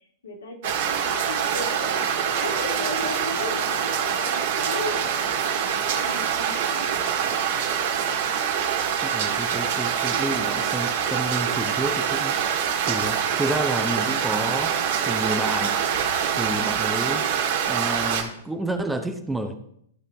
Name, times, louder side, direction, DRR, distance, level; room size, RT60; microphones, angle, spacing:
voice 1, 0.0-7.0 16.3-16.7, left 3 dB, 70° left, 0 dB, 2.1 m, -36 dB
sound 1, 0.6-18.2, right 8 dB, 50° right, 1.6 m, -25 dB
voice 2, 9.0-15.9 16.3-19.6, right 1 dB, 5° right, 6 dB, 0.7 m, -30 dB
14.0 x 5.5 x 3.4 m, 0.70 s
figure-of-eight pair, 105°, 0 cm